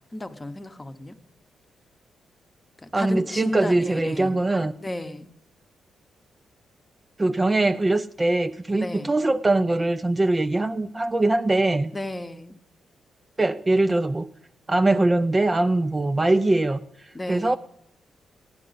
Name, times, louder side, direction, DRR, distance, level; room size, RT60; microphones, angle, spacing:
voice 1, 0.1-1.2 2.8-4.4 4.8-5.3 8.8-9.1 11.9-12.6 17.1-17.6, left 1 dB, 15° left, 0.8 m, -32 dB
voice 2, 2.9-4.7 7.2-12.0 13.4-14.3 14.7-17.6, right 2 dB, 15° right, 0.4 m, -22 dB
14.5 x 11.0 x 3.9 m
cardioid pair, 140°, 0 cm